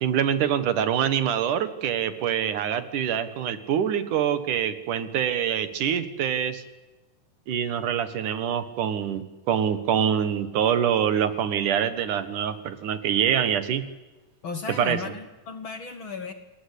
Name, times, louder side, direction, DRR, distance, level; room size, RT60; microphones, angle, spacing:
voice 1, 0.0-6.6 7.5-13.8 14.8-15.0, right 9 dB, 75° right, 11 dB, 3.0 m, -25 dB
voice 2, 14.4-16.3, left 4 dB, 50° left, 8 dB, 1.8 m, -35 dB
28.0 x 20.5 x 8.5 m, 1.1 s
omnidirectional pair, 3.7 m